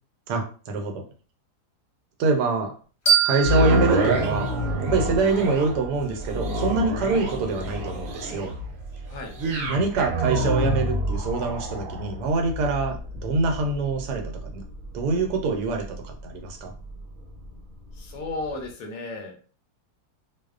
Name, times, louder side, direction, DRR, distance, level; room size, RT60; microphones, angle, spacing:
voice 1, 0.3-1.0 2.2-2.7 3.2-4.5 4.8-8.5 9.7-14.6 14.9-16.7, right 3 dB, 85° right, 3 dB, 1.1 m, -25 dB
sound 1, 3.1-5.9, right 7 dB, 40° left, 0.7 m, -26 dB
sound 2, 3.4-17.6 18.1-18.2, equal, 65° right, 1.0 m, -28 dB
voice 2, 17.9-19.5, left 3 dB, 70° left, 2 dB, 0.9 m, -34 dB
2.6 x 2.0 x 2.3 m, 0.39 s
omnidirectional pair, 1.7 m